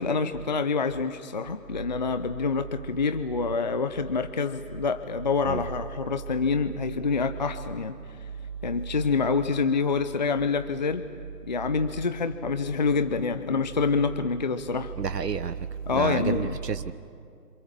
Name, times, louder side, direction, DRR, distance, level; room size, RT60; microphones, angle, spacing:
voice 1, 0.0-8.0 8.6-11.0 11.5-14.9 15.9-16.6, left 4 dB, 30° left, 9 dB, 0.7 m, -27 dB
voice 2, 15.0-15.5 15.9-16.9, right 6 dB, 85° right, 11 dB, 1.3 m, -29 dB
27.0 x 27.0 x 7.6 m, 2.3 s
hypercardioid pair, 160°, 47 cm